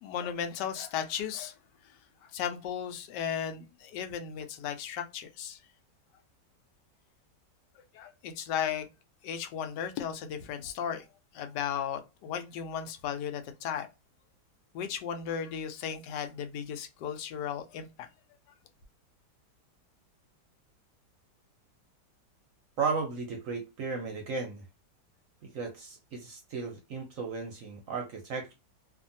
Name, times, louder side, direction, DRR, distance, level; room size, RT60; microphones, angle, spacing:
voice 1, 0.0-1.6 2.3-5.6 7.9-8.9 9.2-11.0 11.3-13.9 14.7-17.9, left 8 dB, 80° left, 1.2 m, -35 dB
voice 2, 22.8-24.6 25.4-28.5, right 4 dB, 65° right, 0.8 m, -35 dB
2.7 x 2.5 x 2.5 m
omnidirectional pair, 1.9 m